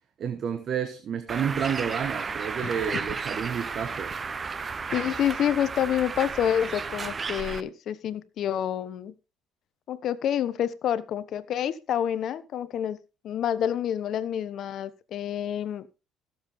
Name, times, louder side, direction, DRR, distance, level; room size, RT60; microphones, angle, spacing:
voice 1, 0.2-4.2, right 8 dB, 50° right, 1.2 m, -30 dB
Bird, 1.3-7.6, right 5 dB, 30° right, 0.7 m, -33 dB
voice 2, 4.9-9.1 9.9-13.0 13.2-16.0, left 10 dB, 60° left, 1.0 m, -28 dB
17.0 x 7.3 x 3.5 m
supercardioid pair, 95°, 0 cm